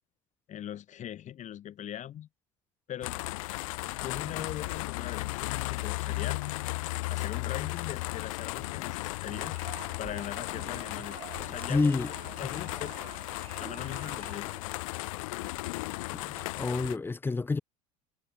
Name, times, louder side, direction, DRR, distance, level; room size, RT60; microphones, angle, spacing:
voice 1, 0.5-2.3 2.9-3.2 3.9-6.4 7.1-9.6 10.0-11.9 12.4-12.9 13.6-14.5, left 11 dB, 45° left, 3.5 m, -40 dB
sound 1, 3.0-17.0, left 22 dB, 85° left, 1.0 m, -35 dB
sound 2, 9.3-14.6, right 9 dB, 35° right, 1.6 m, -48 dB
voice 2, 11.7-12.1 12.4-12.5 16.1-17.6, left 3 dB, 15° left, 0.5 m, -29 dB
supercardioid pair, 95°, 17 cm